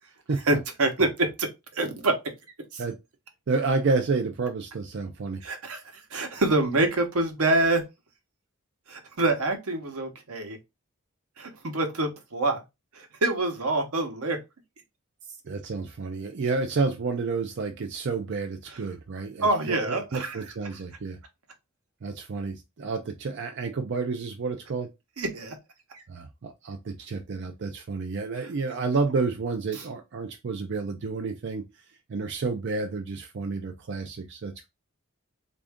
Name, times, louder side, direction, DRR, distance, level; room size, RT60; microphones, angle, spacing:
voice 1, 0.5-2.2 2.7-2.8 5.4-5.8 6.1-7.8 8.9-10.6 11.4-12.6 12.9-14.4 19.4-20.4 25.2-25.6 25.9-26.0, right 2 dB, 85° right, 0.9 m, -26 dB
voice 2, 3.5-5.4 15.4-21.2 22.0-24.9 26.1-31.6 32.1-34.7, right 4 dB, 55° right, 0.4 m, -30 dB
3.5 x 2.5 x 3.5 m
head